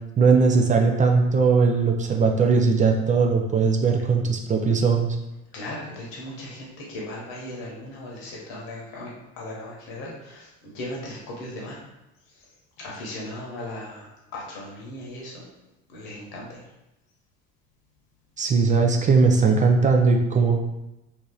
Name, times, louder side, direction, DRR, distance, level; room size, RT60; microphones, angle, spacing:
voice 1, 0.2-5.2 18.4-20.6, right 4 dB, 20° right, 2 dB, 0.3 m, -19 dB
voice 2, 5.5-9.1 9.4-10.4 10.7-11.8 12.8-14.1 14.3-15.4 15.9-16.6, left 1 dB, 65° left, -3 dB, 1.1 m, -37 dB
2.9 x 2.8 x 3.7 m, 0.93 s
hypercardioid pair, 65°, 41 cm